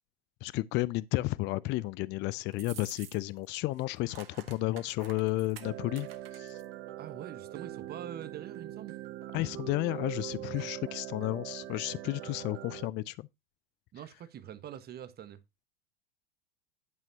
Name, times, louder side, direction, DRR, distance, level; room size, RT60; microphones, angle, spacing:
voice 1, 0.4-6.1 6.3-6.6 9.3-13.3, left 18 dB, 40° left, 0.5 m, -32 dB
sound 1, 2.5-3.5 3.7-6.7, right 10 dB, 70° right, 1.6 m, -50 dB
sound 2, 5.6-12.9, right 13 dB, 50° right, 1.4 m, -42 dB
voice 2, 7.0-9.0 13.9-15.4, right 10 dB, 35° right, 1.4 m, -44 dB
11.0 x 8.9 x 2.8 m
hypercardioid pair, 85°, 29 cm